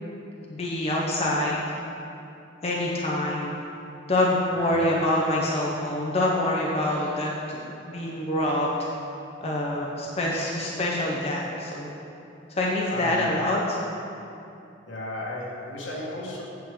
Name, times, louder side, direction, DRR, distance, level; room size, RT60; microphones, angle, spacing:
voice 1, 0.5-1.6 2.6-3.5 4.1-8.7 9.4-11.9 12.5-13.8, left 1 dB, 35° left, -4 dB, 0.7 m, -26 dB
voice 2, 12.9-13.3 14.9-16.4, left 2 dB, 80° left, -4 dB, 1.6 m, -34 dB
8.7 x 6.4 x 3.7 m, 2.7 s
head